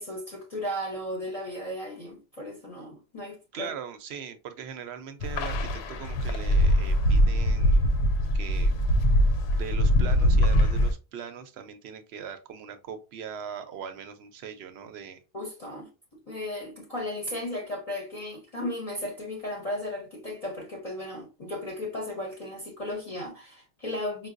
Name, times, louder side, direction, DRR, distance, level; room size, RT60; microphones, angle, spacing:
voice 1, 0.0-3.7 15.3-15.9 16.3-24.3, left 1 dB, 40° left, 0.7 m, -35 dB
voice 2, 3.5-7.8 8.3-8.7 9.6-15.2, right 7 dB, 90° right, 0.8 m, -40 dB
sound 1, 5.2-10.9, equal, 85° left, 0.8 m, -22 dB
4.6 x 2.2 x 2.4 m
omnidirectional pair, 1.0 m